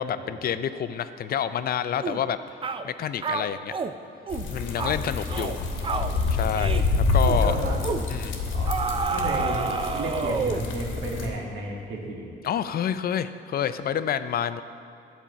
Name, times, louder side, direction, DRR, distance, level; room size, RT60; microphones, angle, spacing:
voice 1, 0.0-2.4 2.8-3.8 4.5-5.6 6.3-7.5 8.1-8.4 12.4-14.6, left 9 dB, 50° left, 12 dB, 0.4 m, -28 dB
sound 1, 2.0-2.2 2.6-2.9 3.2-3.9 4.3-4.5 4.8-5.0 5.3-5.6 5.8-6.1 6.6-6.9 7.2-7.4 7.8-8.1 8.7-10.7, right 5 dB, 25° right, 0.4 m, -29 dB
sound 2, 4.3-11.3, left 3 dB, 85° left, 1.2 m, -27 dB
voice 2, 7.3-7.8 8.5-12.3, right 2 dB, 75° right, -1 dB, 1.6 m, -33 dB
8.6 x 4.4 x 6.9 m, 2.7 s
cardioid pair, 90°, 20 cm